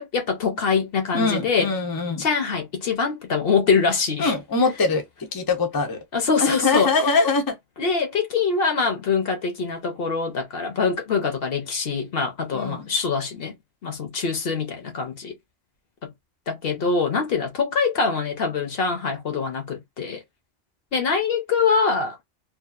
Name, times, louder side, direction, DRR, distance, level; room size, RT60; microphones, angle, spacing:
voice 1, 0.0-1.7 2.2-4.3 6.1-6.9 7.8-13.6 13.8-15.3 16.0-16.1 16.5-20.2 20.9-22.2, left 5 dB, 55° left, 0.9 m, -24 dB
voice 2, 1.1-2.2 4.2-5.0 5.3-6.0 6.4-7.6 12.5-12.9, left 3 dB, 30° left, 0.4 m, -22 dB
2.8 x 2.4 x 2.4 m
omnidirectional pair, 1.2 m